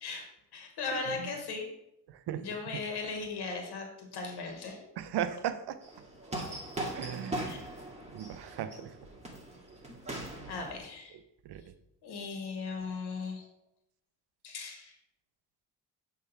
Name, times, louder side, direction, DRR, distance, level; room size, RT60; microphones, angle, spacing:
voice 1, 0.0-1.7 2.3-4.9 6.4-6.6 7.2-7.6 10.5-11.2 12.0-13.5 14.4-15.0, left 4 dB, 80° left, 3 dB, 1.6 m, -38 dB
voice 2, 0.9-1.3 2.3-2.4 2.7-2.8 5.0-5.8 6.9-7.6 8.1-8.9 11.4-11.6, right 10 dB, 80° right, 11 dB, 0.7 m, -36 dB
sound 1, 5.8-10.8, right 1 dB, 15° right, 2.2 m, -40 dB
6.6 x 3.5 x 5.9 m, 0.81 s
cardioid pair, 80°, 39 cm